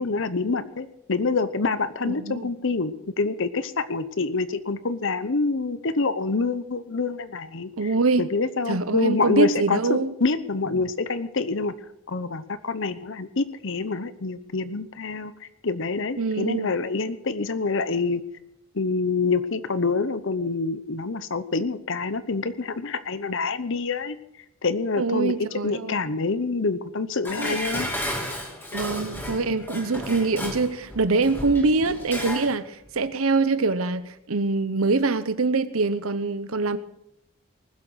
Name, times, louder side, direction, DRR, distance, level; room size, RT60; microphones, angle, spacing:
voice 1, 0.0-7.7 8.2-11.7 12.1-18.2 18.7-24.2 24.6-25.3 25.6-27.9, left 3 dB, 60° left, 0.9 m, -26 dB
voice 2, 2.1-2.5 7.8-8.3 8.7-10.1 16.2-16.7 25.0-26.0 27.4-27.6 28.7-36.8, right 3 dB, 75° right, 0.9 m, -24 dB
Dishes pots and pans, 27.2-32.5 32.9-33.0, equal, 10° left, 2.8 m, -33 dB
19.5 x 8.0 x 6.3 m
head